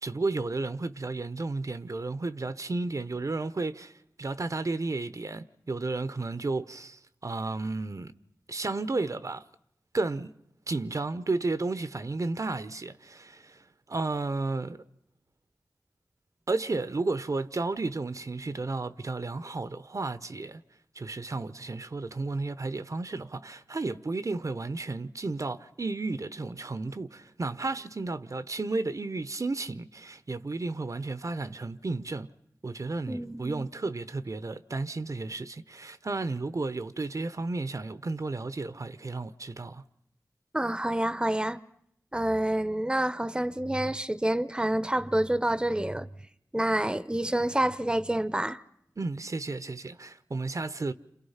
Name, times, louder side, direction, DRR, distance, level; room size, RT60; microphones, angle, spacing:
voice 1, 0.0-8.1 8.5-9.4 9.9-10.3 10.7-14.8 16.5-20.6 20.9-32.3 32.6-39.8 49.0-50.9, right 3 dB, 55° right, 1.0 m, -33 dB
voice 2, 33.1-33.7 40.5-41.6 42.1-46.1 46.5-48.6, right 1 dB, 15° right, 0.9 m, -28 dB
29.0 x 27.5 x 5.8 m
cardioid pair, 45°, 7 cm